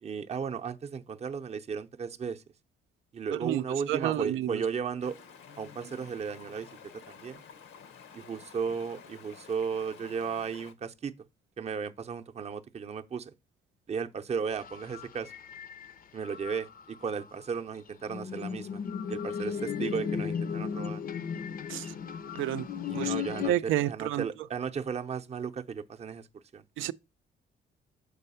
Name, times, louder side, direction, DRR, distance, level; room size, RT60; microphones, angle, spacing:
voice 1, 0.0-2.4 3.1-5.2 5.6-7.4 8.1-11.1 11.6-13.3 13.9-15.3 16.1-18.8 19.1-21.0 22.9-26.6, right 6 dB, 35° right, 0.6 m, -35 dB
voice 2, 3.3-4.6 21.7-21.9 22.3-22.7 22.9-24.3 26.8-26.9, right 13 dB, 80° right, 0.5 m, -30 dB
Stream, 5.0-10.7, left 6 dB, 90° left, 0.9 m, -51 dB
sound 1, 14.5-16.0 16.2-17.2 18.1-23.5, left 7 dB, 45° left, 0.5 m, -35 dB
6.6 x 4.5 x 5.5 m
cardioid pair, 90°, 20 cm